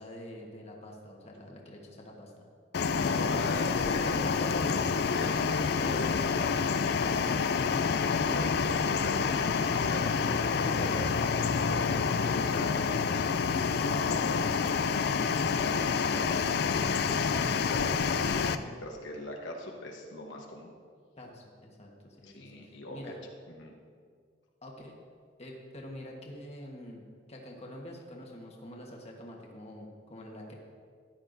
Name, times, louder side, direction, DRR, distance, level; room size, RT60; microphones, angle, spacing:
voice 1, 0.0-2.3 21.2-23.2 24.6-25.0 25.4-27.0 27.3-30.5, left 1 dB, 35° left, -1 dB, 1.3 m, -46 dB
sound 1, 2.7-18.6, left 5 dB, 60° left, 0.4 m, -28 dB
voice 2, 2.8-7.4 7.7-20.7 22.2-23.0 23.5-23.7, left 1 dB, 85° left, 0 dB, 1.2 m, -41 dB
13.5 x 10.5 x 2.6 m, 2.1 s
head